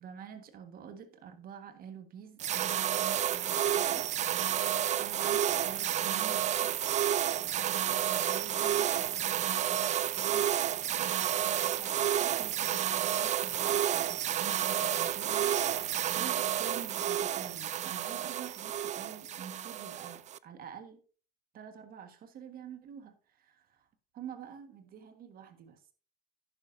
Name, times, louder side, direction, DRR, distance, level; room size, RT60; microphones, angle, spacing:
voice 1, 0.0-4.1 4.5-6.8 7.4-21.0 21.5-23.9 24.1-25.9, right 8 dB, 60° right, 9 dB, 1.6 m, -48 dB
sound 1, 2.4-20.4, right 10 dB, 45° right, 0.4 m, -30 dB
10.5 x 10.0 x 2.7 m, 0.37 s
cardioid pair, 110°, 17 cm